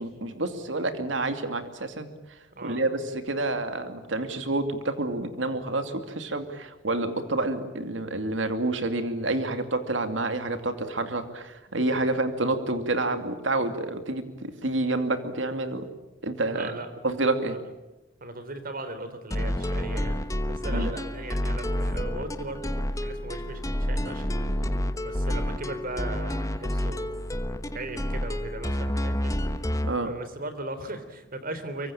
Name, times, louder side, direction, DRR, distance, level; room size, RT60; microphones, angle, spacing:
voice 1, 0.0-15.9 16.2-16.7 17.0-17.6 20.7-20.9 29.8-30.1, right 2 dB, 75° right, 8 dB, 2.5 m, -28 dB
voice 2, 2.5-2.8 12.0-12.2 16.5-16.9 18.2-20.2 20.4-24.7 24.9-29.3 30.0-31.9, right 2 dB, 50° right, 10 dB, 3.3 m, -38 dB
sound 1, 19.3-30.0, equal, 15° left, 1.2 m, -29 dB
25.0 x 24.0 x 8.8 m, 0.98 s
head